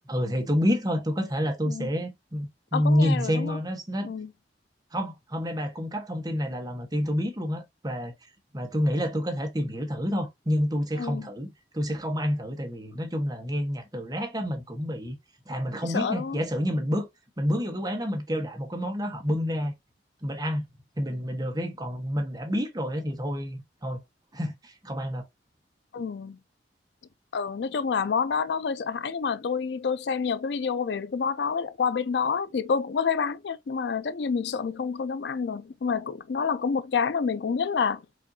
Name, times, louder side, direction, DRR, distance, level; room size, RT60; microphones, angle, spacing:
voice 1, 0.1-4.1 4.9-8.1 8.5-11.5 11.7-15.2 15.5-17.1 17.4-19.7 20.2-20.6 21.0-24.0 24.3-25.3, equal, 20° right, 1.0 m, -28 dB
voice 2, 2.7-3.6 4.0-4.3 11.0-11.3 15.9-16.4 25.9-26.4 27.3-38.0, left 5 dB, 70° left, 0.4 m, -28 dB
4.9 x 2.6 x 2.6 m
head